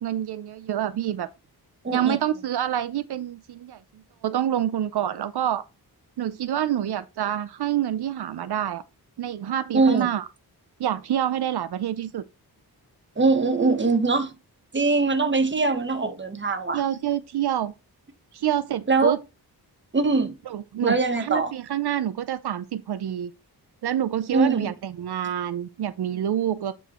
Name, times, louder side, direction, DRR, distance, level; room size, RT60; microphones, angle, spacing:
voice 1, 0.0-1.3 1.9-3.8 4.2-5.6 6.2-8.8 9.2-10.3 10.8-12.2 16.7-17.7 18.3-19.2 20.5-23.3 23.8-26.7, right 11 dB, 75° right, 0.6 m, -27 dB
voice 2, 1.8-2.2 9.7-10.1 13.2-14.3 14.7-16.8 18.9-19.2 19.9-20.3 20.8-21.5 24.3-24.7, right 3 dB, 30° right, 1.2 m, -22 dB
9.0 x 4.7 x 3.1 m
wide cardioid pair, 100°, 39 cm